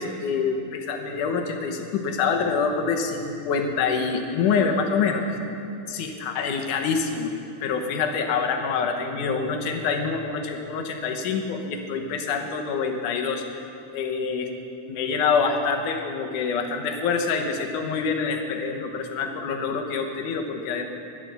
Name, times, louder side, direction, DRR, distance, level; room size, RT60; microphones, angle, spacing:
voice 1, 0.0-5.4 5.9-7.3 7.6-13.5 13.9-14.5 14.9-20.8, left 5 dB, 85° left, 3 dB, 2.6 m, -26 dB
12.5 x 11.0 x 6.7 m, 2.7 s
omnidirectional pair, 3.5 m